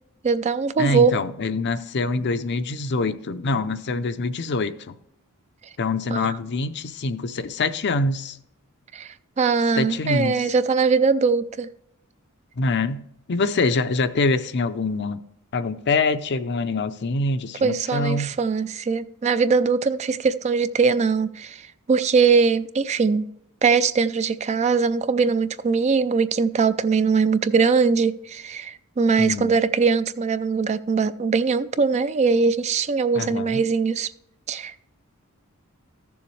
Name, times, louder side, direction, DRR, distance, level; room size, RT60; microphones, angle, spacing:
voice 1, 0.2-1.1 6.1-6.4 8.9-11.7 17.6-23.3 23.6-34.1 34.5-34.8, right 5 dB, 30° right, 0.3 m, -21 dB
voice 2, 0.8-4.7 5.8-8.4 9.8-10.3 12.6-13.0 13.3-15.2 15.5-18.3 29.2-29.5 33.1-33.6, left 3 dB, 50° left, 0.6 m, -25 dB
14.0 x 7.0 x 3.2 m
head